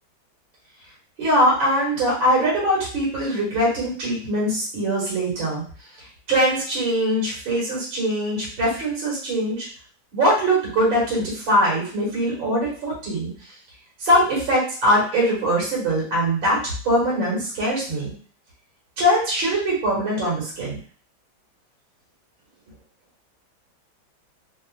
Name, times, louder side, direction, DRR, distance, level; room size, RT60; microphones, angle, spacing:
voice 1, 1.2-5.6 6.0-9.7 10.1-13.3 14.0-18.1 19.0-20.8, equal, 75° right, -6 dB, 2.3 m, -22 dB
4.3 x 2.1 x 2.4 m, 0.43 s
omnidirectional pair, 2.1 m